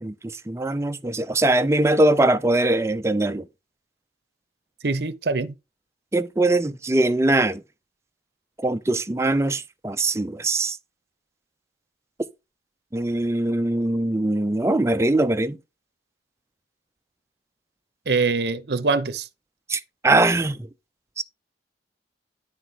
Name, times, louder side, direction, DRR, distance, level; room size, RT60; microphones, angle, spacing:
voice 1, 0.0-3.4 6.1-7.6 8.6-10.8 12.9-15.6 19.7-20.6 21.2-21.3, right 2 dB, 15° right, 0.4 m, -22 dB
voice 2, 4.8-5.5 18.1-19.3, right 4 dB, 65° right, 0.7 m, -23 dB
9.9 x 4.6 x 4.0 m
head